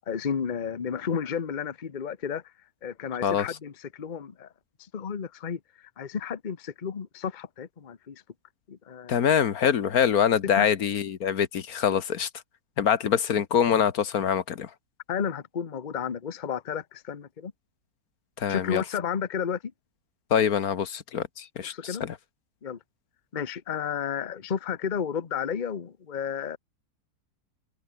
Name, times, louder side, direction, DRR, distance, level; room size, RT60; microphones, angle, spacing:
voice 1, 0.1-2.5 2.8-4.5 4.8-8.2 8.7-9.2 10.5-10.7 15.1-17.5 18.5-19.7 21.6-22.0 22.6-22.8 23.3-26.6, left 7 dB, 35° left, 1.0 m, -32 dB
voice 2, 9.1-12.3 12.8-14.7 18.4-18.8 20.3-22.1, left 8 dB, 75° left, 1.6 m, -24 dB
omnidirectional pair, 1.6 m